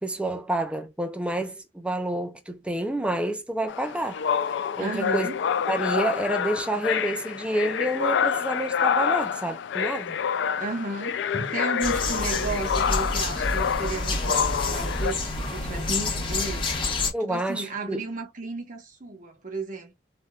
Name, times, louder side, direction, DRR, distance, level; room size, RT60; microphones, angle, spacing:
voice 1, 0.0-4.2 4.8-5.3 5.7-10.2 17.1-18.0, right 1 dB, 5° right, 0.4 m, -28 dB
sound 1, 3.7-15.1, left 7 dB, 80° left, 0.3 m, -27 dB
voice 2, 4.8-5.4 10.6-19.9, right 3 dB, 45° right, 0.9 m, -34 dB
sound 2, 11.8-17.1, left 2 dB, 30° left, 0.9 m, -28 dB
3.5 x 2.6 x 2.2 m
head